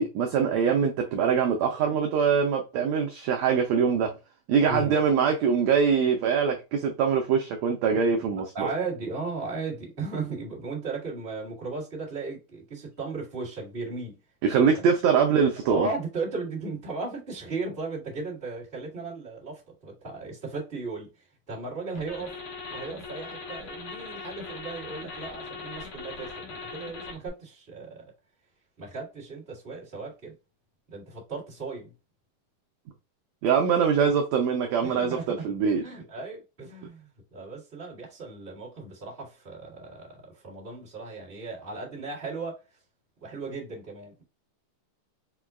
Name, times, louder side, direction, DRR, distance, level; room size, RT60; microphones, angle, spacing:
voice 1, 0.0-4.1 4.5-8.7 14.4-15.9 33.4-35.8, right 6 dB, 90° right, 1.5 m, -23 dB
voice 2, 8.5-14.2 14.5-14.9 15.6-21.1 21.5-22.3 22.7-28.0 28.8-30.3 30.9-31.9 34.8-35.4 35.8-42.6 43.2-44.2, right 3 dB, 25° right, 1.2 m, -36 dB
sound 1, 22.0-27.3, left 4 dB, 85° left, 1.2 m, -40 dB
6.1 x 2.3 x 2.3 m
omnidirectional pair, 3.8 m